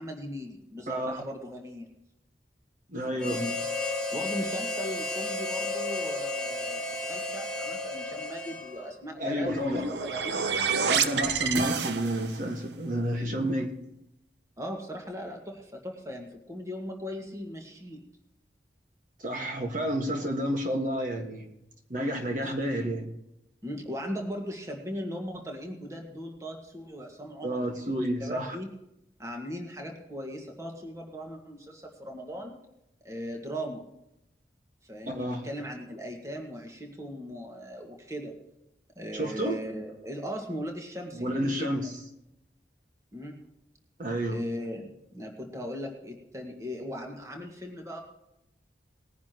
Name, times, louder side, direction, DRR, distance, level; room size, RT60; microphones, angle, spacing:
voice 1, 0.0-1.9 3.1-3.6 4.1-10.5 14.6-18.0 22.4-22.5 23.6-27.9 28.2-28.7 29.2-32.6 33.0-33.8 34.8-38.4 39.0-41.7 43.1-43.4 44.3-48.0, equal, 15° right, 2 dB, 1.8 m, -38 dB
voice 2, 0.9-1.2 2.9-3.5 9.2-10.0 10.8-13.7 19.2-21.5 21.9-23.1 27.4-28.5 35.1-35.5 39.1-39.6 41.1-41.9 44.0-44.4, equal, 45° right, 2 dB, 1.7 m, -30 dB
Harmonica, 3.2-9.0, left 2 dB, 5° left, 1.8 m, -33 dB
sound 1, 9.5-12.5, right 6 dB, 75° right, 0.8 m, -28 dB
20.0 x 10.5 x 3.0 m, 0.84 s
head